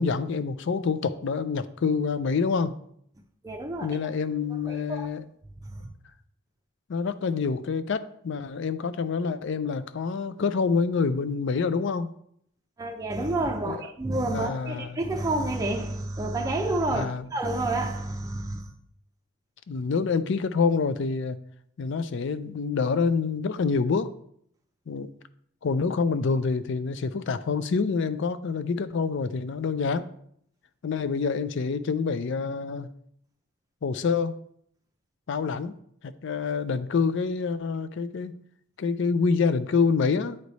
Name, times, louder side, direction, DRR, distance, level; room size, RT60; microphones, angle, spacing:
voice 1, 0.0-2.8 3.8-5.2 6.9-12.1 13.7-13.8 14.3-14.9 16.9-17.2 19.7-21.4 21.8-24.1 24.9-25.1 25.6-30.1 30.8-32.9 33.8-34.4 35.3-35.7 36.0-38.3 38.8-40.4, left 5 dB, 55° left, 13 dB, 0.4 m, -27 dB
voice 2, 3.4-4.0 4.4-5.1 5.6-5.9 12.8-18.7, right 2 dB, 15° right, 2 dB, 0.5 m, -29 dB
9.3 x 3.2 x 4.0 m, 0.69 s
head